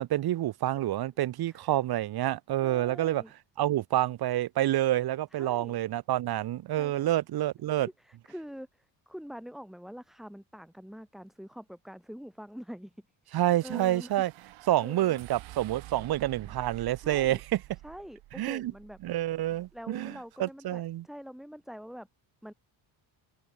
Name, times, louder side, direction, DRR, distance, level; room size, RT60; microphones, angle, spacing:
voice 1, 0.0-3.2 3.6-7.9 13.3-14.3 14.7-17.6 18.4-18.7 19.0-20.1 20.4-21.0, right 14 dB, 50° right, 1.4 m, -28 dB
voice 2, 2.6-3.3 5.3-5.8 6.8-7.1 8.0-12.9 13.3-14.1 14.8-15.2 16.4-16.5 17.0-17.4 17.8-19.0 19.7-22.1 22.4-22.5, equal, ahead, 3.3 m, -45 dB
sound 1, 13.6-19.9, right 18 dB, 80° right, 3.5 m, -49 dB
cardioid pair, 165°, 47 cm